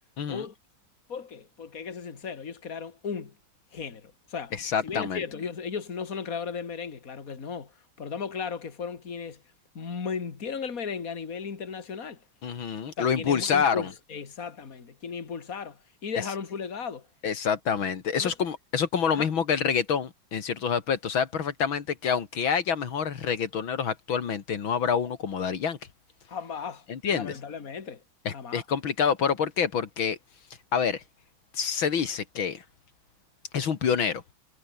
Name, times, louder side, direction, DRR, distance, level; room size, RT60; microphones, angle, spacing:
voice 1, 1.1-3.4 3.7-4.5 4.8-7.7 8.0-9.4 9.7-12.2 13.0-17.1 18.2-18.3 19.1-19.3 26.3-28.0 28.3-28.6, left 6 dB, 45° left, 2.7 m, -36 dB
voice 2, 4.6-5.2 12.4-13.9 17.2-25.8 26.9-27.3 28.3-30.2 30.7-31.0 31.5-32.6 33.5-34.2, left 7 dB, 80° left, 2.7 m, -27 dB
omnidirectional pair, 2.2 m